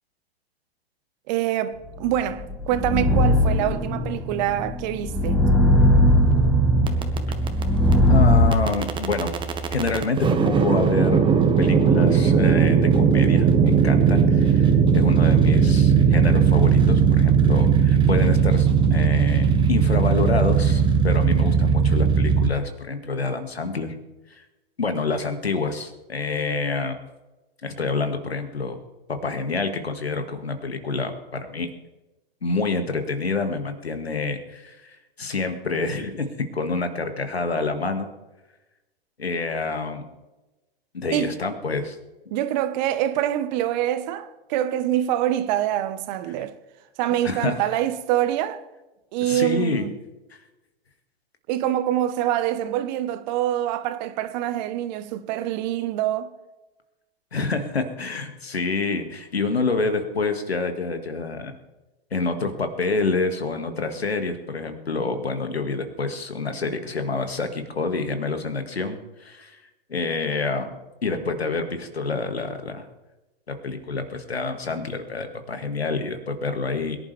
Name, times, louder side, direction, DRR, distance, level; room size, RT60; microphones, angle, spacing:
voice 1, 1.3-5.4 41.1-41.3 42.3-46.5 47.0-48.6 49.1-50.0 51.5-56.3, right 12 dB, 45° right, 1.4 m, -25 dB
sound 1, 2.1-8.5, left 2 dB, ahead, 1.5 m, -20 dB
sound 2, 5.6-22.5, right 6 dB, 15° right, 1.5 m, -19 dB
voice 2, 8.0-9.3 9.7-11.2 11.6-23.9 24.3-24.4 24.8-27.0 27.6-28.8 29.2-31.7 32.4-38.1 39.2-40.1 40.9-42.0 47.2-47.5 49.2-49.8 57.3-61.6 62.1-69.5 69.9-72.9 73.5-77.0, left 3 dB, 90° left, 2.1 m, -27 dB
22.5 x 11.0 x 3.5 m
hypercardioid pair, 110°, 30 cm